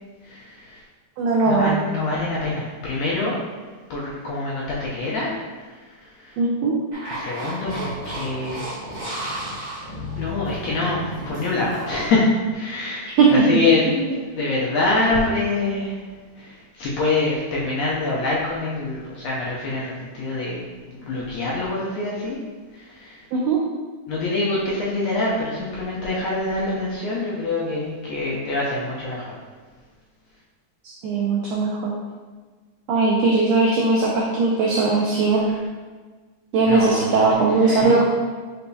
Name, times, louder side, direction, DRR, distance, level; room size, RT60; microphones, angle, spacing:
voice 1, 0.2-0.8 1.5-3.4 3.9-6.4 7.1-8.6 10.2-13.9 14.3-22.4 22.7-23.2 24.1-29.3 35.4-35.7 36.7-37.9, left 2 dB, 75° left, -6 dB, 1.6 m, -25 dB
voice 2, 1.2-1.8 6.4-6.7 13.2-13.3 14.0-14.1 23.3-23.6 30.8-31.9 32.9-35.4 36.5-38.0, right 3 dB, 85° right, -3 dB, 1.4 m, -19 dB
sound 1, 6.9-12.1, equal, 45° right, 1.8 m, -32 dB
5.4 x 3.9 x 2.3 m, 1.4 s
omnidirectional pair, 3.6 m